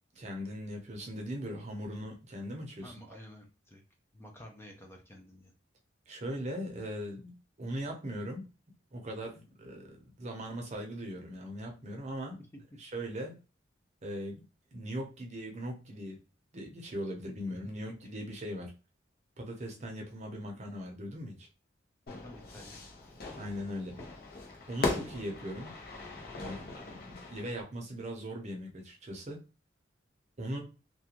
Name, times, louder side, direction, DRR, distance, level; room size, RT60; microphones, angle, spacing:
voice 1, 0.1-3.2 6.1-8.5 8.9-12.4 12.8-13.4 14.0-14.4 14.7-16.2 16.5-18.7 19.4-21.5 23.4-24.0 24.7-25.7 26.4-29.4 30.4-30.6, equal, 40° right, 2 dB, 0.7 m, -39 dB
voice 2, 2.8-3.8 4.1-5.5 12.3-12.6 17.5-17.9 22.1-22.9, left 1 dB, 15° left, 2 dB, 0.4 m, -52 dB
Fire / Fireworks, 22.1-27.6, left 3 dB, 55° left, 0.7 m, -39 dB
2.4 x 2.2 x 2.9 m, 0.32 s
head